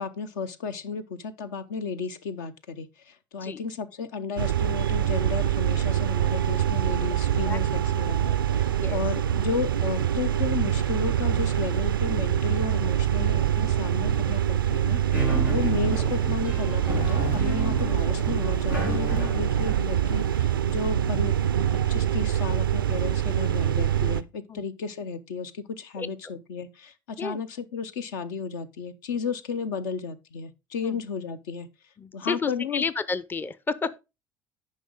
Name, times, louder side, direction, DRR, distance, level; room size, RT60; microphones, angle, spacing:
voice 1, 0.0-15.0 15.5-21.6 21.9-31.7 32.1-32.8, left 5 dB, 70° left, 0.7 m, -33 dB
sound 1, 4.4-24.2, right 10 dB, 85° right, 0.4 m, -25 dB
sound 2, 15.1-20.2, right 1 dB, 90° left, 2.3 m, -32 dB
voice 2, 32.0-34.0, left 4 dB, 15° left, 0.5 m, -31 dB
9.9 x 5.2 x 3.8 m
figure-of-eight pair, 60°, 11 cm